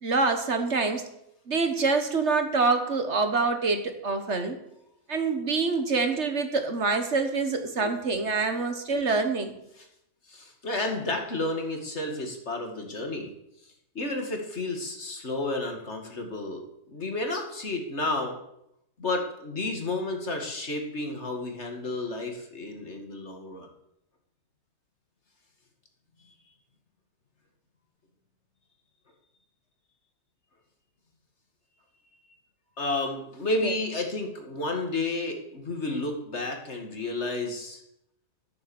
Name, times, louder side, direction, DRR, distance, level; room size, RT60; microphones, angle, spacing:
voice 1, 0.0-1.0 1.5-4.6 5.1-9.5 33.6-33.7, right 4 dB, 55° right, 7 dB, 1.7 m, -26 dB
voice 2, 10.3-13.3 13.9-18.4 19.0-23.7 32.8-37.8, left 2 dB, 50° left, 3 dB, 2.4 m, -31 dB
13.5 x 10.0 x 7.1 m, 0.79 s
omnidirectional pair, 1.5 m